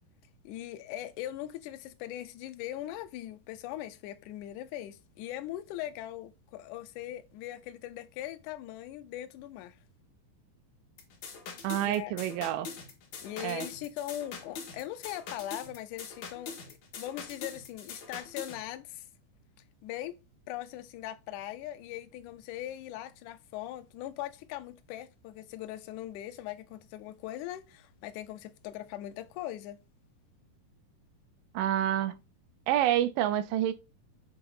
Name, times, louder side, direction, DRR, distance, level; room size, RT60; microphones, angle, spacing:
voice 1, 0.5-9.8 11.8-12.1 13.2-19.1 19.8-20.2 20.5-29.8, left 13 dB, 90° left, 1.7 m, -40 dB
sound 1, 11.0-18.6, left 5 dB, 70° left, 3.1 m, -43 dB
voice 2, 11.6-12.7 13.4-13.7 31.5-32.2 32.7-33.7, right 12 dB, 80° right, 2.1 m, -28 dB
7.9 x 2.8 x 5.4 m
omnidirectional pair, 4.1 m